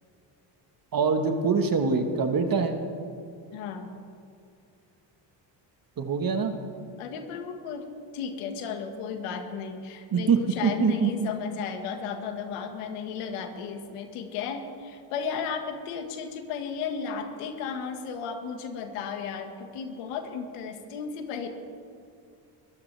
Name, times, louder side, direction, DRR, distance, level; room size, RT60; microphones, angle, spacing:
voice 1, 0.9-2.8 6.0-6.5 10.1-11.3, right 5 dB, 40° right, 6 dB, 1.5 m, -24 dB
voice 2, 3.5-4.0 7.0-7.9 8.1-21.5, left 6 dB, 85° left, 5 dB, 1.8 m, -34 dB
22.5 x 14.5 x 3.4 m, 2.4 s
supercardioid pair, 80°, 50 cm